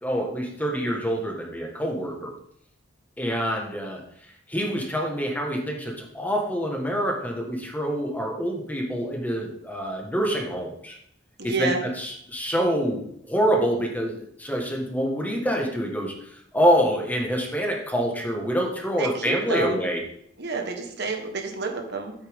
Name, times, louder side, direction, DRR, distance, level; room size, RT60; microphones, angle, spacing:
voice 1, 0.0-2.3 3.2-4.0 4.5-11.0 11.4-20.0, equal, 10° left, 0 dB, 1.7 m, -26 dB
voice 2, 11.4-11.8 19.0-19.8 20.4-22.1, right 3 dB, 55° right, 3 dB, 1.5 m, -29 dB
14.0 x 8.4 x 3.7 m, 0.70 s
head